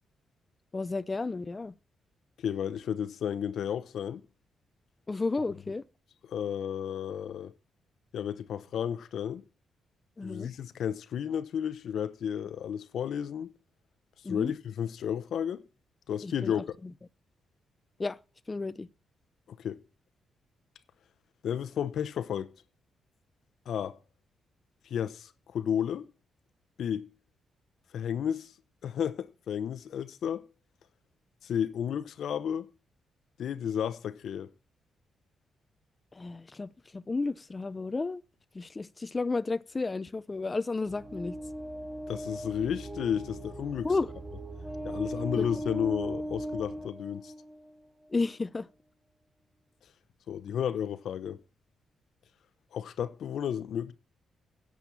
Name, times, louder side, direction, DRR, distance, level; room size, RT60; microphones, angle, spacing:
voice 1, 0.7-1.7 5.1-5.8 10.2-10.5 14.2-14.5 16.2-16.9 18.0-18.2 18.5-18.9 36.1-38.2 38.5-41.4 43.8-44.1 45.4-45.5 48.1-48.7, left 3 dB, 30° left, 0.5 m, -32 dB
voice 2, 2.4-4.2 6.3-7.5 8.1-9.4 10.2-13.5 14.3-15.6 16.1-16.6 19.6-19.8 21.4-22.5 23.7-24.0 24.8-26.1 26.8-27.1 27.9-28.5 28.8-30.4 31.4-32.7 33.4-34.5 42.1-43.9 44.8-47.3 50.3-51.4 52.7-53.9, left 8 dB, 75° left, 0.8 m, -32 dB
sound 1, 40.9-47.8, right 1 dB, 25° right, 3.8 m, -38 dB
10.5 x 7.1 x 7.2 m
cardioid pair, 70°, 0 cm